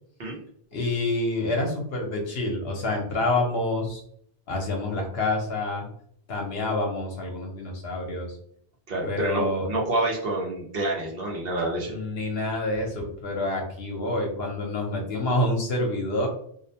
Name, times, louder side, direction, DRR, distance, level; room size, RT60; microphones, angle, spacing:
voice 1, 0.7-4.0 4.5-5.9 6.3-8.3 9.1-9.7 11.8-16.3, left 2 dB, 65° left, 1 dB, 0.9 m, -27 dB
voice 2, 8.9-11.9, right 2 dB, 65° right, -2 dB, 0.9 m, -28 dB
2.5 x 2.1 x 2.7 m, 0.65 s
omnidirectional pair, 1.1 m